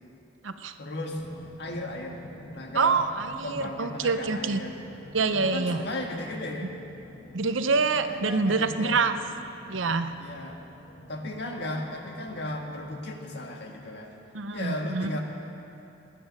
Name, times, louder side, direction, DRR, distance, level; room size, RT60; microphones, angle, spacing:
voice 1, 0.8-1.2 1.6-3.0 3.4-4.7 5.3-6.7 7.9-9.0 10.2-10.6 11.1-14.1 14.5-15.2, left 1 dB, 60° left, 2 dB, 1.7 m, -36 dB
sound 1, 1.1-13.0, equal, 40° left, 1.5 m, -49 dB
voice 2, 2.8-4.6 5.1-5.8 7.3-9.1 9.7-10.1 14.3-15.1, right 4 dB, 85° right, 9 dB, 0.7 m, -26 dB
19.0 x 10.0 x 6.5 m, 2.8 s
head